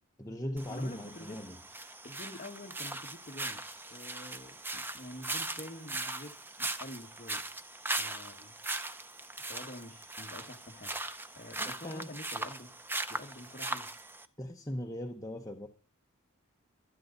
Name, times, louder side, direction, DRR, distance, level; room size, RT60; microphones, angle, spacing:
voice 1, 0.2-1.6 11.6-12.2 14.4-15.7, left 1 dB, 15° left, 1.0 m, -39 dB
sound 1, 0.6-14.3, right 2 dB, 10° right, 0.7 m, -39 dB
voice 2, 0.7-1.5 2.0-7.4 7.8-8.5 9.4-11.0 11.4-12.7 13.1-13.9, left 1 dB, 35° left, 1.8 m, -48 dB
25.0 x 9.4 x 4.1 m
head